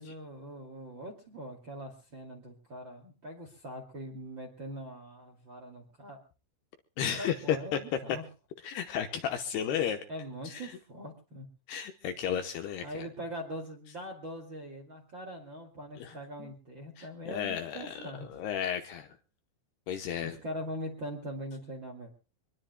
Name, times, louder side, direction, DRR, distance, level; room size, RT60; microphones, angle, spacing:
voice 1, 0.0-6.2 7.1-8.2 10.1-11.5 12.8-18.4 20.2-22.1, equal, 35° right, 3 dB, 2.1 m, -42 dB
voice 2, 7.0-7.8 8.6-10.0 10.4-10.7 11.7-13.1 16.0-16.5 17.0-17.9 18.3-19.1 19.9-20.4, left 9 dB, 70° left, 6 dB, 2.7 m, -33 dB
25.5 x 20.5 x 2.2 m, 0.34 s
omnidirectional pair, 5.4 m